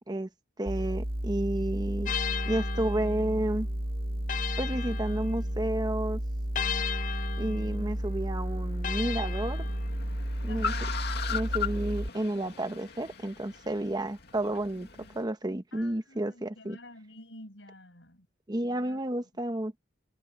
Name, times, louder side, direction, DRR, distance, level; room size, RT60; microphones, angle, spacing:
voice 1, 0.6-2.1 2.4-3.7 4.6-6.2 7.4-9.7 10.4-10.7 11.3-14.9 15.1-16.8 18.5-19.8, right 1 dB, 25° right, 1.1 m, -31 dB
sound 1, 0.7-12.1, right 1 dB, 55° right, 1.9 m, -32 dB
sound 2, 2.0-5.8 6.5-10.2, left 9 dB, 45° left, 0.4 m, -37 dB
Car, 7.8-15.2, left 7 dB, 60° left, 2.4 m, -39 dB
voice 2, 10.5-11.0 15.7-18.3 18.6-19.0, left 2 dB, 80° left, 6.8 m, -48 dB
head